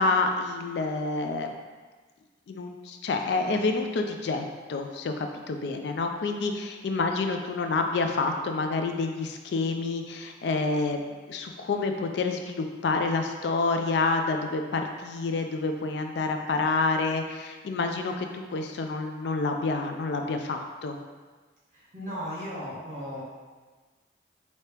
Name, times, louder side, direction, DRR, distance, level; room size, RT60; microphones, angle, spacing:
voice 1, 0.0-1.5 2.5-11.0 11.3-21.0, left 3 dB, 70° left, 5 dB, 0.3 m, -28 dB
voice 2, 21.7-23.2, equal, 40° right, -8 dB, 1.5 m, -36 dB
4.4 x 2.8 x 3.3 m, 1.4 s
head